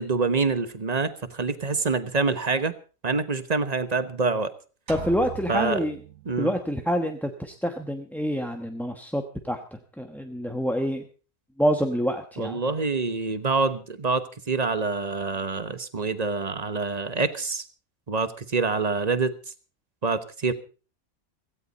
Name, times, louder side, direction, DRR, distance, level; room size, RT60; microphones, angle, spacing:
voice 1, 0.0-2.7 3.0-4.5 5.5-5.8 6.3-6.5 12.4-17.7 18.1-19.4 20.0-20.5, right 4 dB, 30° right, 11 dB, 1.0 m, -26 dB
voice 2, 4.9-6.0 6.4-9.6 10.0-11.0 11.6-12.6, equal, ahead, 4 dB, 0.9 m, -27 dB
sound 1, 4.9-6.7, right 9 dB, 65° right, 2.0 m, -40 dB
17.0 x 16.0 x 4.1 m, 0.37 s
omnidirectional pair, 1.5 m